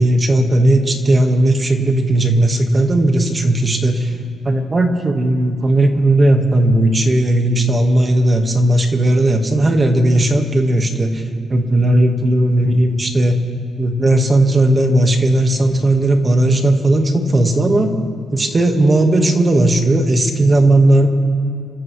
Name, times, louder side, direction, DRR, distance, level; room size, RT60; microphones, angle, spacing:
voice 1, 0.0-4.1 4.4-13.4 13.8-17.9 18.3-21.1, right 1 dB, 25° right, 4 dB, 1.6 m, -15 dB
29.5 x 14.0 x 3.3 m, 2.4 s
cardioid pair, 90°, 0 cm